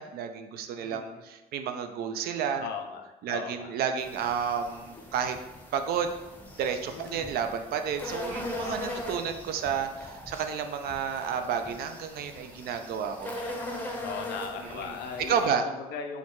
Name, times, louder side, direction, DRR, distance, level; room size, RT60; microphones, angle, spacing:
voice 1, 0.0-2.7 3.2-5.4 5.7-6.1 6.6-13.4 14.6-15.0 15.3-15.7, right 7 dB, 65° right, 7 dB, 0.4 m, -31 dB
voice 2, 0.8-1.2 2.6-3.0 3.3-3.7 6.9-7.3 8.6-9.0 14.0-16.2, left 6 dB, 75° left, 4 dB, 0.5 m, -38 dB
sound 1, 4.0-15.5, left 1 dB, 10° left, 0.6 m, -40 dB
4.5 x 2.2 x 2.9 m, 1.1 s
cardioid pair, 110°, 17 cm